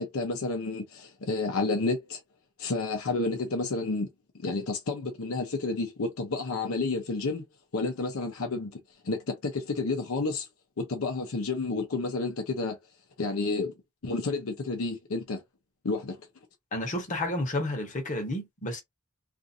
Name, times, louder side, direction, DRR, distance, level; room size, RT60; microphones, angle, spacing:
voice 1, 0.0-2.2 2.6-4.1 4.4-7.5 7.7-8.8 9.0-10.5 10.8-12.8 13.2-13.7 14.0-15.4 15.8-16.2, left 3 dB, 70° left, 0.7 m, -30 dB
voice 2, 16.7-18.8, left 1 dB, 35° left, 0.9 m, -31 dB
2.5 x 2.5 x 2.6 m
head